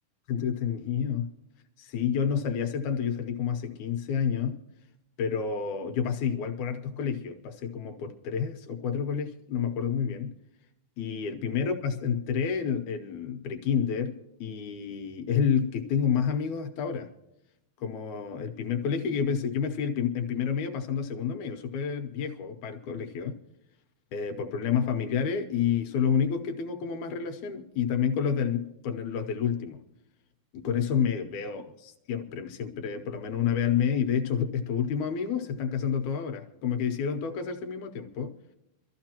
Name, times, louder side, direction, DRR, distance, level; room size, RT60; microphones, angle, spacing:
voice 1, 0.3-1.3 1.8-4.6 5.2-10.4 11.0-17.1 17.8-23.4 24.1-29.8 30.5-38.4, left 7 dB, 75° left, 2.2 m, -29 dB
24.5 x 14.0 x 2.9 m
omnidirectional pair, 3.5 m